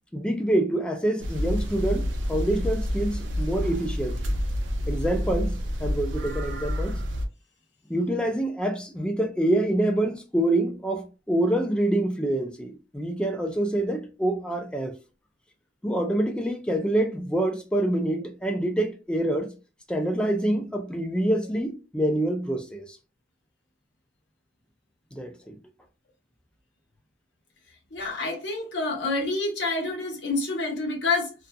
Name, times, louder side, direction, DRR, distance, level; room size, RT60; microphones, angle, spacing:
voice 1, 0.1-4.4 4.9-7.0 7.9-14.9 15.8-19.5 19.9-22.9 25.1-25.6, right 1 dB, 5° left, 0.4 m, -26 dB
sound 1, 1.2-7.3, equal, 75° right, 0.6 m, -28 dB
voice 2, 27.9-31.3, left 3 dB, 65° left, 0.9 m, -28 dB
2.6 x 2.5 x 2.2 m
head